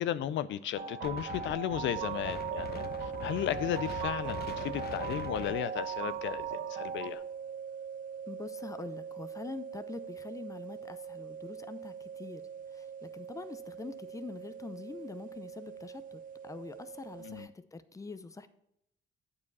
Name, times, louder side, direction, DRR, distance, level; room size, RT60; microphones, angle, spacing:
voice 1, 0.0-7.2 17.2-17.5, left 11 dB, 70° left, 0.4 m, -35 dB
sound 1, 0.7-7.1, right 7 dB, 85° right, 1.4 m, -39 dB
Wind, 1.0-6.5, left 6 dB, 50° left, 0.8 m, -43 dB
sound 2, 2.0-17.5, right 7 dB, 45° right, 0.5 m, -42 dB
voice 2, 8.3-12.4 12.7-18.5, left 3 dB, 15° left, 0.6 m, -44 dB
8.4 x 4.9 x 5.3 m
cardioid pair, 90°, 20 cm